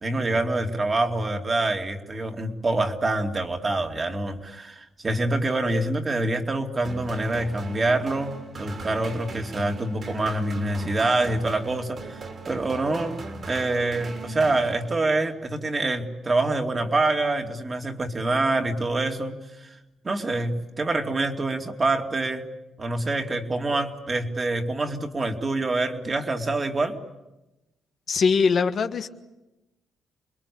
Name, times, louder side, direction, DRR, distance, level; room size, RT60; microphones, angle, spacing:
voice 1, 0.0-19.8 20.0-22.4 22.8-27.0, right 2 dB, 30° right, 4 dB, 2.7 m, -26 dB
sound 1, 6.8-15.2, right 3 dB, 45° right, 3.5 m, -39 dB
voice 2, 28.1-29.1, left 5 dB, 55° left, 7 dB, 1.4 m, -21 dB
28.5 x 21.5 x 8.6 m, 0.98 s
cardioid pair, 90°, 0 cm